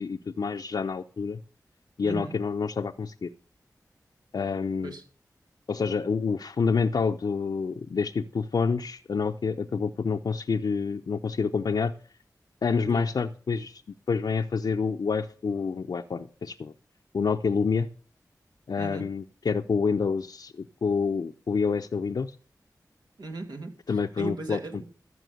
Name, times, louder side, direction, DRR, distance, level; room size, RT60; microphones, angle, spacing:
voice 1, 0.0-1.4 2.0-3.3 4.3-4.9 5.7-11.9 12.6-13.8 14.1-16.7 17.1-17.9 18.7-22.4 23.9-24.6, left 5 dB, 75° left, 5 dB, 0.6 m, -28 dB
voice 2, 2.0-2.3 4.8-5.0 12.8-13.0 18.8-19.1 23.2-24.9, right 2 dB, 80° right, 3 dB, 2.5 m, -37 dB
14.0 x 6.1 x 7.8 m, 0.43 s
cardioid pair, 45°, 7 cm